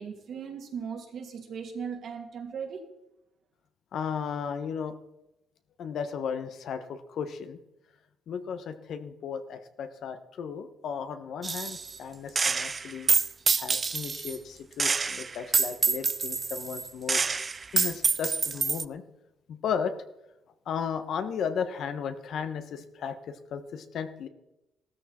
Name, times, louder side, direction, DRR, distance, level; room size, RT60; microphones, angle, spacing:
voice 1, 0.0-2.8, right 6 dB, 65° right, 2 dB, 2.8 m, -38 dB
voice 2, 3.9-4.9 5.8-7.6 8.3-13.1 13.6-17.2 17.7-19.0 19.5-19.9 20.7-24.3, left 7 dB, 70° left, 9 dB, 1.3 m, -35 dB
Gunshot gunfire, 11.4-12.0 12.4-14.4 14.8-18.8, right 4 dB, 35° right, 0.5 m, -27 dB
15.5 x 13.0 x 4.5 m, 0.90 s
cardioid pair, 90°, 0 cm